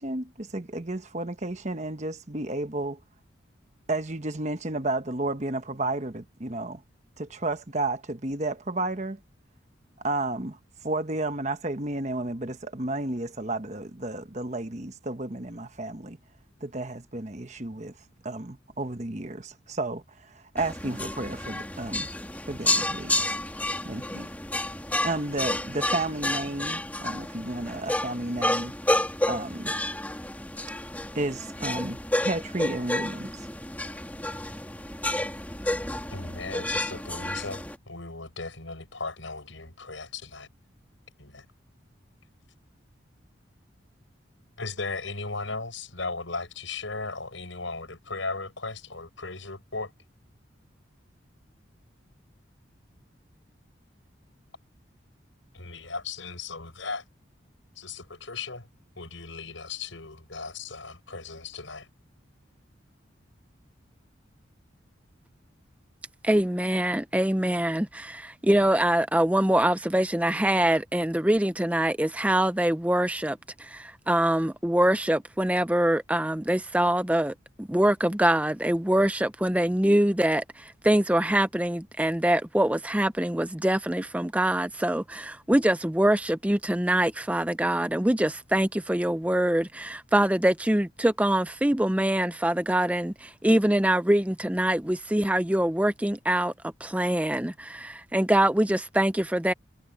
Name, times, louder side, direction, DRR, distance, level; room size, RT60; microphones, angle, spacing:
voice 1, 0.0-3.0 3.9-6.8 7.2-9.2 10.0-10.6 10.8-16.2 16.6-17.9 18.2-22.1 22.5-23.4 23.8-24.3 25.0-28.7 29.3-29.7 31.1-33.5, right 2 dB, 35° right, 1.2 m, -32 dB
sound 1, 20.6-37.7, left 1 dB, 10° left, 2.6 m, -30 dB
voice 2, 36.1-40.5 41.2-41.5 44.6-49.9 55.5-57.0 57.8-58.7 59.0-61.9, left 3 dB, 85° left, 7.3 m, -36 dB
voice 3, 66.2-96.5 96.8-99.5, right 1 dB, 5° right, 0.5 m, -24 dB
head